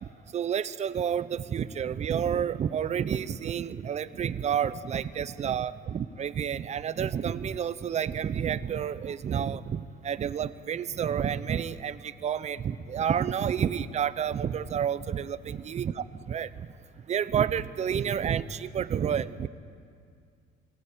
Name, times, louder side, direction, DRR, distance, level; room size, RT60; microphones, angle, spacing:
voice 1, 0.0-16.7 17.1-19.5, right 8 dB, 40° right, 15 dB, 0.8 m, -30 dB
22.0 x 17.5 x 8.7 m, 2.2 s
cardioid pair, 110°, 17 cm